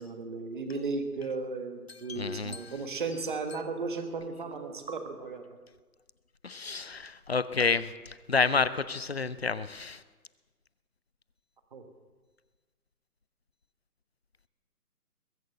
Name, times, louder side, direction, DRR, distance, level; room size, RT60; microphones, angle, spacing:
voice 1, 0.0-5.4 11.7-11.9, right 3 dB, 30° right, 6 dB, 1.4 m, -35 dB
voice 2, 2.1-2.7 6.4-10.0, left 4 dB, 45° left, 16 dB, 0.5 m, -29 dB
21.5 x 9.1 x 6.7 m, 1.3 s
hypercardioid pair, 170°, 47 cm